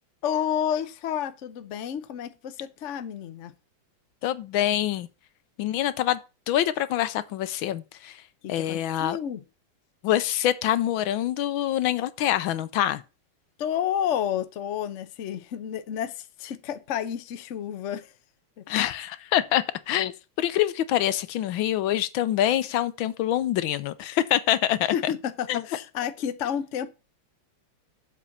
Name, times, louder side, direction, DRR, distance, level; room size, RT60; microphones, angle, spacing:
voice 1, 0.2-3.5 8.4-9.4 13.6-18.1 18.6-18.7 24.9-26.9, left 9 dB, 90° left, 0.6 m, -30 dB
voice 2, 4.2-5.1 5.6-6.2 6.5-8.2 8.5-9.2 10.0-13.0 18.7-24.9 25.5-25.6, left 12 dB, 75° left, 1.4 m, -25 dB
7.6 x 5.4 x 7.1 m
omnidirectional pair, 2.4 m